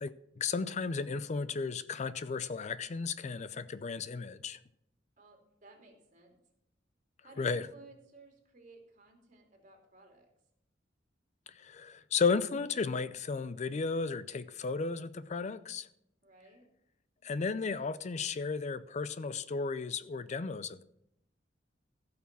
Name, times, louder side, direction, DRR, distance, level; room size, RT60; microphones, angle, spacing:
voice 1, 0.0-4.6 7.4-7.7 11.6-15.9 17.2-20.8, left 4 dB, 40° left, 0.4 m, -34 dB
voice 2, 5.2-6.4 7.2-10.3 16.2-16.6, right 2 dB, 45° right, 2.8 m, -57 dB
15.5 x 6.0 x 6.1 m
head